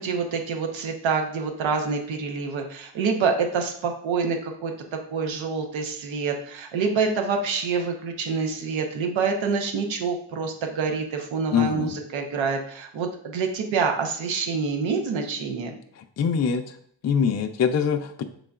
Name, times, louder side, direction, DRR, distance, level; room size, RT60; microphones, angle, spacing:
voice 1, 0.0-4.7 5.1-15.7, right 5 dB, 85° right, 3 dB, 0.9 m, -26 dB
voice 2, 11.5-12.0 16.0-16.8 17.0-18.2, left 7 dB, 35° left, 5 dB, 0.5 m, -24 dB
5.3 x 3.7 x 2.4 m, 0.62 s
supercardioid pair, 50°, 45 cm